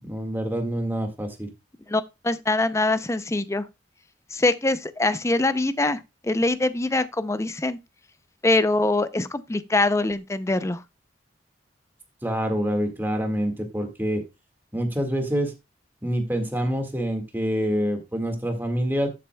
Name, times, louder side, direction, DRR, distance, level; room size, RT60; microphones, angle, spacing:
voice 1, 0.0-1.5 12.2-14.2 14.7-15.5 16.0-19.1, equal, 10° right, 1.8 m, -26 dB
voice 2, 1.9-3.6 4.3-7.8 8.4-10.8, left 2 dB, 15° left, 0.5 m, -23 dB
12.5 x 7.6 x 2.3 m
head